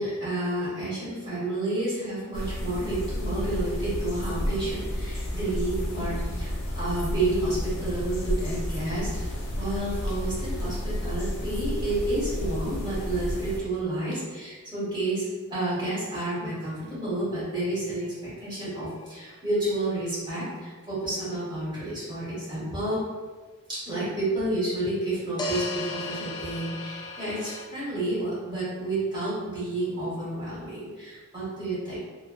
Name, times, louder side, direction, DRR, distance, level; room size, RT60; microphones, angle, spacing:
voice 1, 0.0-23.0 23.7-32.0, right 1 dB, 20° right, -10 dB, 1.4 m, -30 dB
sound 1, 2.3-13.6, equal, 75° left, 0.7 m, -31 dB
sound 2, 18.5-18.6 25.4-27.6, left 2 dB, 20° left, 0.3 m, -34 dB
3.2 x 2.2 x 2.3 m, 1.4 s
head